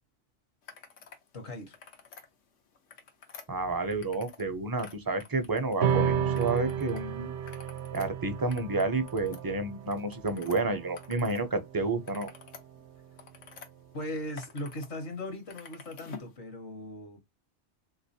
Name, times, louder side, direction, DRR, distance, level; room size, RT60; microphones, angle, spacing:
sound 1, 0.6-1.2 1.6-2.3 2.7-4.5 4.7-5.9 6.3-7.0 7.3-11.5 11.8-13.7 14.1-14.9 15.2-16.3, left 6 dB, 90° left, 1.2 m, -50 dB
voice 1, 1.3-1.8 13.9-17.2, left 1 dB, 65° left, 1.2 m, -38 dB
voice 2, 3.5-7.3 7.9-12.3, right 3 dB, 30° right, 0.4 m, -30 dB
sound 2, 5.8-12.5, right 8 dB, 70° right, 0.9 m, -33 dB
3.3 x 3.0 x 2.7 m
omnidirectional pair, 1.2 m